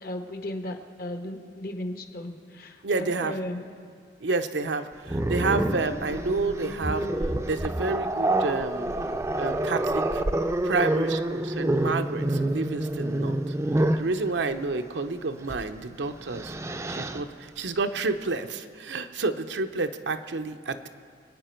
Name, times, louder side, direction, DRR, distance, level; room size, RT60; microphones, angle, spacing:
voice 1, 0.0-3.6, left 1 dB, 55° left, 5 dB, 1.1 m, -35 dB
voice 2, 2.8-3.4 4.2-8.9 9.4-10.2 10.6-16.5 16.9-20.9, right 3 dB, 80° right, 7 dB, 0.7 m, -30 dB
Growling, 5.1-14.1 15.4-15.6 16.1-17.2, right 1 dB, 15° right, 0.5 m, -27 dB
25.5 x 9.4 x 4.5 m, 2.1 s
head